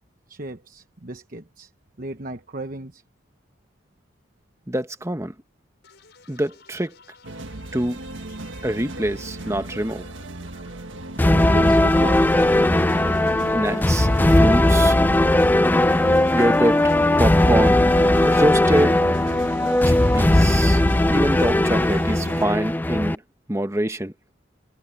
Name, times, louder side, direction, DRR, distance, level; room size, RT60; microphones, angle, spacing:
voice 1, 0.3-1.7 2.0-3.0 11.3-12.2, right 1 dB, 45° right, 1.1 m, -34 dB
voice 2, 4.7-5.3 6.3-7.0 7.7-8.0 8.6-10.1 13.5-15.0 16.3-16.8 17.2-17.8 18.3-19.0 19.8-20.8 21.1-23.2 23.5-24.1, right 1 dB, 15° right, 1.2 m, -24 dB
sound 1, 5.8-19.4, left 3 dB, 60° left, 7.3 m, -53 dB
sound 2, 7.2-22.5, right 2 dB, 90° right, 1.6 m, -36 dB
sound 3, 11.2-23.2, left 1 dB, 10° left, 0.4 m, -18 dB
head